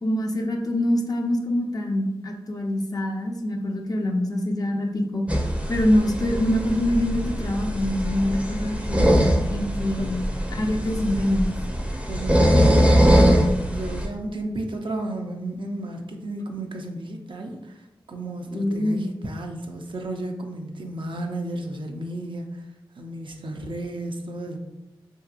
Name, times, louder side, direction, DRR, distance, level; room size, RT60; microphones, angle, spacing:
voice 1, 0.0-5.3 5.7-9.1 9.5-10.2 10.5-11.5 18.5-19.0, left 1 dB, 45° left, 2 dB, 0.5 m, -24 dB
sound 1, 5.3-14.1, equal, 15° right, 0.5 m, -22 dB
voice 2, 12.1-13.4 13.7-22.7 23.0-24.6, right 1 dB, 65° right, 3 dB, 0.5 m, -33 dB
2.8 x 2.8 x 2.4 m, 0.93 s
cardioid pair, 40°, 9 cm